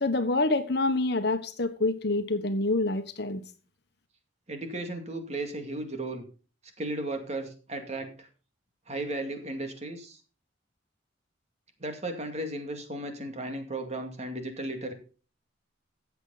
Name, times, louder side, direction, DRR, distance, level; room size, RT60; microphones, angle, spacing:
voice 1, 0.0-3.4, left 2 dB, 55° left, 1.2 m, -27 dB
voice 2, 4.5-6.3 6.8-8.3 8.9-10.2 11.8-14.9, right 1 dB, 35° right, 2.3 m, -35 dB
14.5 x 8.1 x 4.0 m
head